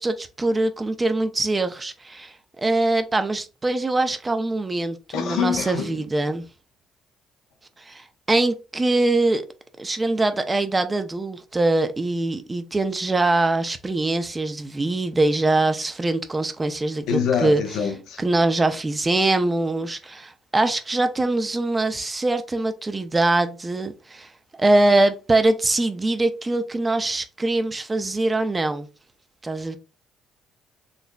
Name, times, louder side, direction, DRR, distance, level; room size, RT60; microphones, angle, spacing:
voice 1, 0.0-6.5 7.8-9.4 9.8-17.6 18.2-28.9 29.4-29.8, right 2 dB, 25° right, 0.6 m, -23 dB
voice 2, 5.1-6.0 17.1-18.2, left 7 dB, 80° left, 0.8 m, -25 dB
3.9 x 3.1 x 2.3 m
supercardioid pair, 75°, 0 cm